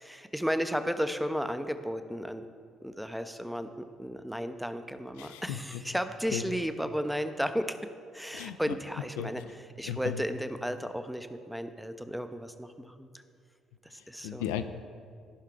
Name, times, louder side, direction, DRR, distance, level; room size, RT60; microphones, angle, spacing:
voice 1, 0.0-2.4 2.8-7.8 8.1-9.4 9.8-13.1 13.9-14.4, equal, ahead, 9 dB, 0.5 m, -34 dB
voice 2, 5.2-5.8 6.3-6.4 8.3-8.6 9.2-9.5 9.8-10.2 13.9-14.6, left 10 dB, 70° left, 8 dB, 0.3 m, -36 dB
14.5 x 5.6 x 3.3 m, 2.3 s
figure-of-eight pair, 45°, 0 cm